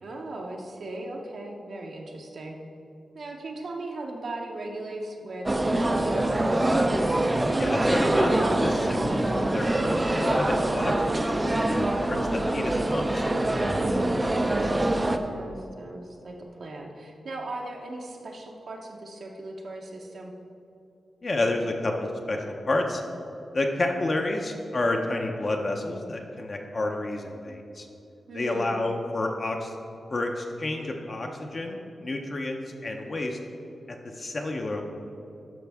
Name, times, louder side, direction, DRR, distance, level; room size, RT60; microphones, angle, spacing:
voice 1, 0.0-2.6 3.1-6.7 13.6-14.8 15.3-20.3 28.3-28.7, right 2 dB, 60° right, 0 dB, 0.7 m, -38 dB
sound 1, 5.4-15.2, right 1 dB, 15° right, 0.4 m, -24 dB
voice 2, 7.6-13.2 21.2-23.0 23.5-27.9 28.3-29.8 30.1-33.4 33.9-34.8, left 2 dB, 35° left, 2 dB, 0.6 m, -30 dB
12.5 x 5.2 x 3.5 m, 2.7 s
wide cardioid pair, 155°, 0 cm